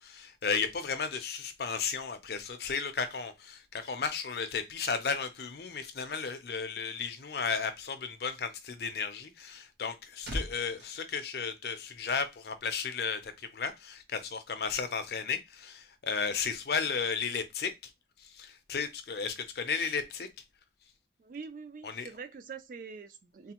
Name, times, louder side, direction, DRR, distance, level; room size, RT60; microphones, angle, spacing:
voice 1, 0.0-17.9 18.2-20.3 21.8-22.1, left 5 dB, 60° left, 0.5 m, -34 dB
sound 1, 9.7-12.2 12.5-12.7, equal, 75° right, 1.0 m, -42 dB
voice 2, 21.2-23.5, right 5 dB, 45° right, 0.3 m, -44 dB
3.2 x 2.1 x 2.9 m
head